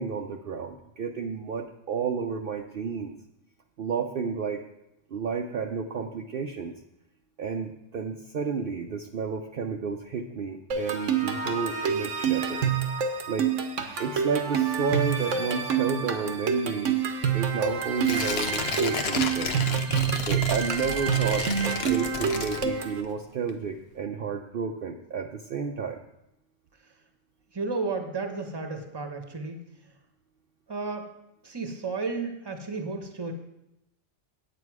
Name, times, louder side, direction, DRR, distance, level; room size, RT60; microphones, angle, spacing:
voice 1, 0.0-3.1 3.8-4.6 5.1-6.7 7.4-12.7 13.3-13.5 14.0-17.0 17.3-19.5 20.3-26.0, right 5 dB, 55° right, 3 dB, 0.8 m, -31 dB
sound 1, 10.7-23.0, right 7 dB, 85° right, 1.3 m, -27 dB
Tearing, 18.0-23.1 23.5-23.6, left 5 dB, 60° left, 1.0 m, -32 dB
voice 2, 27.5-29.6 30.7-31.1 31.4-33.3, right 4 dB, 20° right, 5 dB, 1.1 m, -32 dB
9.2 x 8.6 x 4.7 m, 0.87 s
omnidirectional pair, 1.2 m